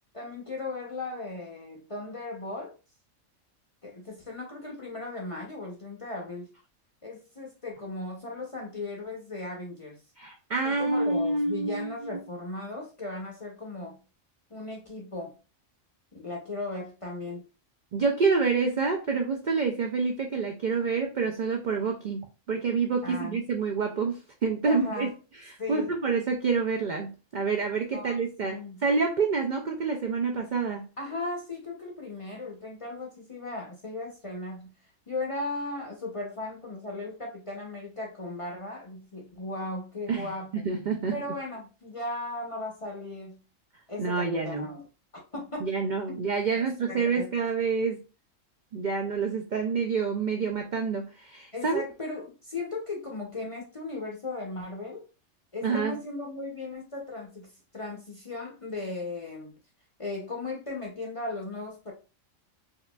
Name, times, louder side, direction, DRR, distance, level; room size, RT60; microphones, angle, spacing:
voice 1, 0.1-2.7 3.8-6.5 7.0-10.0 10.6-14.0 14.5-15.3 16.1-17.4 23.0-23.5 24.7-25.1 25.6-25.9 27.9-28.1 28.4-28.8 31.0-34.7 35.1-40.5 41.1-43.4 43.9-44.9 45.1-45.7 46.1-46.2 46.6-47.3 51.5-55.0 55.5-59.5 60.0-61.9, left 2 dB, 35° left, -1 dB, 0.5 m, -37 dB
voice 2, 10.2-12.1 17.9-22.2 22.5-25.1 25.4-30.8 40.1-40.3 40.5-41.1 44.0-44.7 45.6-48.0 48.7-51.8 55.6-56.0, right 4 dB, 80° right, 3 dB, 0.4 m, -27 dB
4.6 x 2.5 x 2.2 m, 0.33 s
omnidirectional pair, 1.4 m